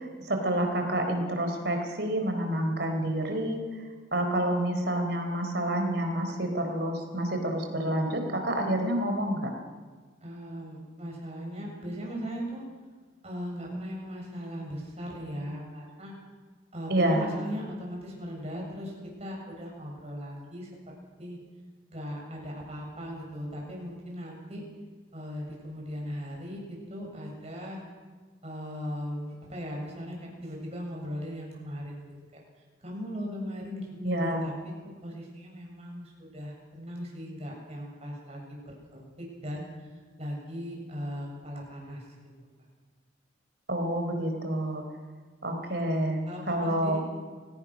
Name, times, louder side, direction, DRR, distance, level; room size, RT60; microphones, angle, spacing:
voice 1, 0.0-3.6 4.1-9.5 16.9-17.3 34.0-34.5 43.7-44.8 45.4-46.2 46.5-47.0, right 1 dB, 55° right, 4 dB, 4.2 m, -28 dB
voice 2, 10.2-12.6 13.2-16.1 16.7-18.9 19.2-20.7 21.2-21.4 21.9-24.6 25.1-27.8 28.4-32.0 32.8-34.5 35.0-38.6 38.9-39.7 40.2-42.0 45.6-45.8 46.3-47.0, equal, 35° right, -1 dB, 7.5 m, -38 dB
29.5 x 17.5 x 6.4 m, 1.5 s
head